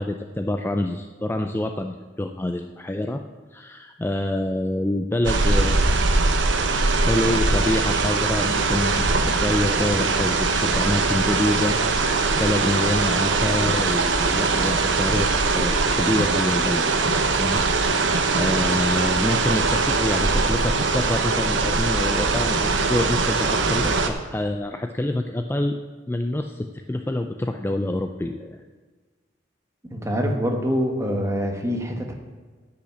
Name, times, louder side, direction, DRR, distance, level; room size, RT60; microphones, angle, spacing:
voice 1, 0.0-3.2 3.5-6.3 7.0-9.0 9.4-11.8 12.4-25.8 26.1-28.6, left 1 dB, 10° left, 5 dB, 0.4 m, -26 dB
sound 1, 5.2-24.1, right 3 dB, 90° right, 1.0 m, -21 dB
voice 2, 29.9-32.1, equal, 15° right, 3 dB, 1.3 m, -25 dB
10.5 x 5.8 x 8.6 m, 1.4 s
head